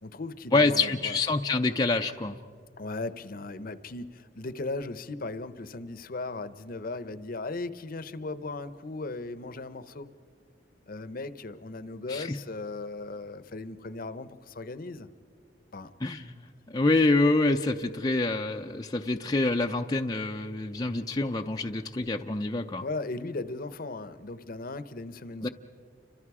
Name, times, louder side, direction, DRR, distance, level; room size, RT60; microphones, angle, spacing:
voice 1, 0.0-1.2 2.8-10.1 10.9-15.1 15.7-15.9 22.8-25.5, left 3 dB, 50° left, 13 dB, 0.8 m, -37 dB
voice 2, 0.5-2.4 12.1-12.4 16.0-22.8 25.4-25.5, left 2 dB, 20° left, 4 dB, 0.5 m, -26 dB
29.5 x 25.5 x 4.8 m, 2.2 s
head